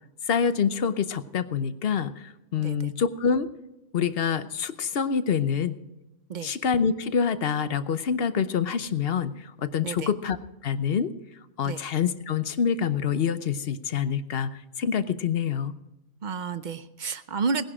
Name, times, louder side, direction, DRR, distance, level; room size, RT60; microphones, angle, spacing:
voice 1, 0.3-3.5 3.9-5.8 6.4-10.4 10.6-11.1 11.6-15.7, left 7 dB, 50° left, 12 dB, 0.9 m, -26 dB
voice 2, 2.6-2.9 6.3-6.5 9.8-10.1 11.6-11.8 16.2-17.6, right 5 dB, 45° right, 12 dB, 0.6 m, -31 dB
18.5 x 10.5 x 4.9 m, 0.96 s
omnidirectional pair, 1.4 m